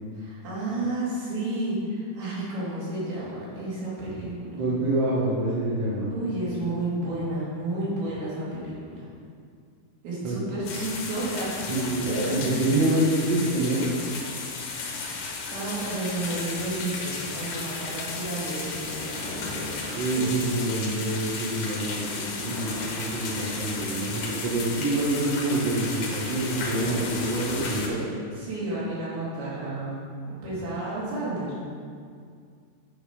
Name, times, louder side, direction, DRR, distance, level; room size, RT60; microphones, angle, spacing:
voice 1, 0.2-4.6 6.1-9.1 10.0-11.5 11.9-12.4 15.5-19.8 20.2-20.3 28.3-31.5, right 2 dB, 75° right, -8 dB, 4.2 m, -31 dB
voice 2, 4.6-6.1 10.2-10.4 11.7-13.9 19.9-28.1, right 2 dB, 45° right, -6 dB, 1.5 m, -26 dB
sound 1, 10.6-27.9, left 4 dB, 70° left, 1.8 m, -34 dB
10.5 x 4.3 x 5.1 m, 2.2 s
omnidirectional pair, 4.5 m